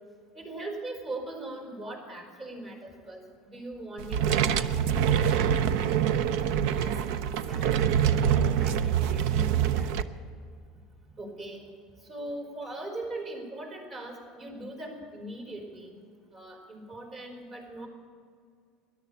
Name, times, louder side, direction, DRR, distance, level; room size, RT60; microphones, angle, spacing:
voice 1, 0.3-5.6 11.2-11.7 12.0-16.0 16.3-17.9, right 2 dB, 40° right, 1 dB, 4.8 m, -40 dB
sound 1, 4.0-10.0, right 9 dB, 75° right, 0.6 m, -25 dB
voice 2, 6.5-10.0, right 1 dB, 10° right, 1 dB, 2.0 m, -45 dB
13.5 x 11.0 x 8.7 m, 2.2 s
supercardioid pair, 95°, 0 cm